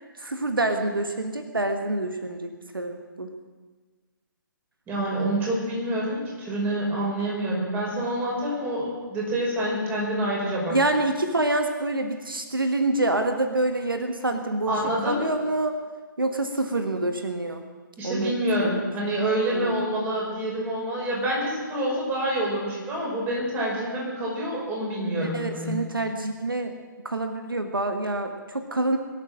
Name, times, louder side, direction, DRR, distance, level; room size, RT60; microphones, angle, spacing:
voice 1, 0.2-3.3 10.7-14.8 15.0-15.7 16.2-17.6 18.0-18.3 18.6-18.7 19.5-19.7 25.2-26.7 27.0-29.0, right 2 dB, 80° right, 6 dB, 1.5 m, -26 dB
voice 2, 4.9-10.8 14.7-15.3 18.0-25.8, right 1 dB, 15° right, -3 dB, 5.3 m, -27 dB
22.5 x 8.4 x 7.6 m, 1.4 s
figure-of-eight pair, 135°, 11 cm